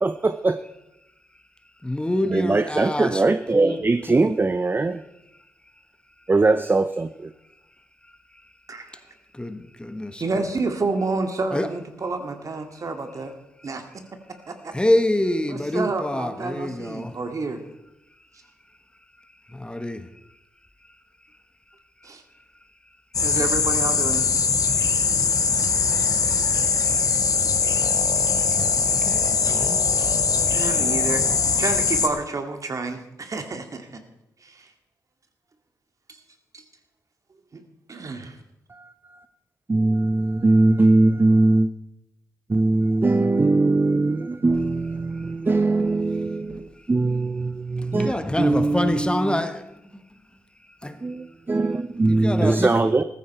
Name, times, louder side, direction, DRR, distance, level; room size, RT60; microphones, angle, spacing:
voice 1, 0.0-0.6 2.3-5.0 6.3-7.3 38.7-39.2 39.7-41.7 42.5-49.4 51.0-53.0, right 2 dB, 30° right, 0.7 m, -21 dB
voice 2, 1.8-3.2 3.5-3.8 4.1-4.2 8.0-8.1 9.3-10.2 11.5-11.7 14.7-17.2 19.5-20.1 24.7-24.8 27.6-27.7 28.4-29.9 46.5-46.9 47.8-50.1 50.8-51.0 52.1-52.8, left 1 dB, 15° left, 1.3 m, -27 dB
voice 3, 8.7-9.0 10.2-13.3 13.6-13.8 14.5-14.7 15.5-17.6 22.0-22.2 23.2-24.3 30.5-31.2 31.5-34.0 34.4-34.7 36.5-36.6 37.5-37.6 37.9-38.4, right 3 dB, 50° right, 2.2 m, -29 dB
sound 1, 23.1-32.1, left 5 dB, 55° left, 1.6 m, -21 dB
14.5 x 14.0 x 4.4 m
supercardioid pair, 45°, 7 cm